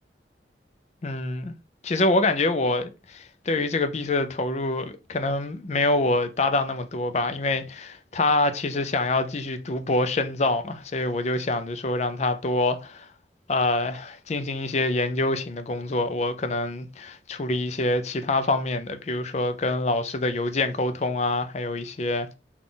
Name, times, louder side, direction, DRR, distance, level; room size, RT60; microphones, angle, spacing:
voice 1, 1.0-1.5 1.8-13.1 13.5-22.3, left 2 dB, 40° left, 0.4 m, -26 dB
3.7 x 2.4 x 3.8 m
head